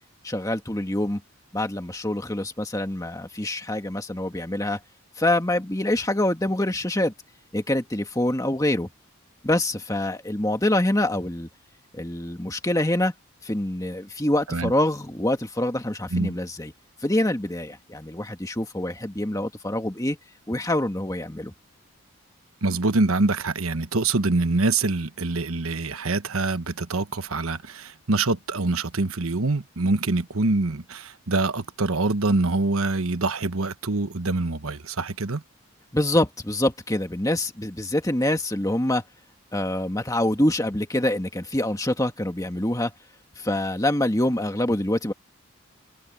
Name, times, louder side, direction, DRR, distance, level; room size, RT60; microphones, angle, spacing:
voice 1, 0.2-1.2 1.5-4.8 5.2-7.1 7.5-8.9 9.4-11.5 11.9-13.1 13.4-16.7 17.0-20.2 20.5-21.5 35.9-39.0 39.5-42.9 43.4-45.1, left 1 dB, 15° left, 1.8 m, -25 dB
voice 2, 22.6-35.4, right 3 dB, 75° right, 1.2 m, -25 dB
head